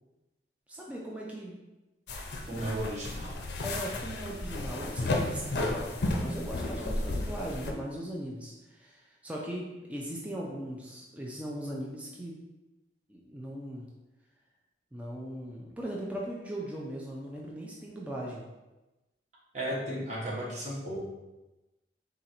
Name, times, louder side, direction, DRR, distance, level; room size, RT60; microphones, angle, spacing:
voice 1, 0.7-1.6 3.6-12.4 13.1-13.9 14.9-18.4, right 1 dB, 5° right, -3 dB, 0.4 m, -39 dB
sound 1, 2.1-7.7, left 2 dB, 60° left, 0.5 m, -33 dB
voice 2, 2.5-3.4 19.5-21.0, right 1 dB, 40° right, -6 dB, 1.2 m, -34 dB
3.9 x 2.5 x 4.3 m, 1.1 s
head